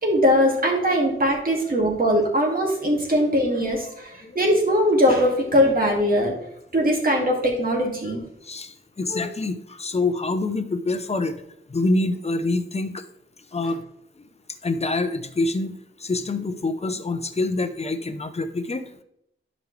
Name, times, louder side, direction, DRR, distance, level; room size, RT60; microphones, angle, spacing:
voice 1, 0.0-6.4 6.7-8.2, equal, 45° right, -1 dB, 2.2 m, -21 dB
voice 2, 8.4-11.3 11.7-13.0 13.5-13.8 14.6-15.7 16.0-18.8, left 2 dB, 30° left, 9 dB, 0.7 m, -26 dB
12.0 x 5.3 x 3.3 m, 0.76 s
wide cardioid pair, 110°, 21 cm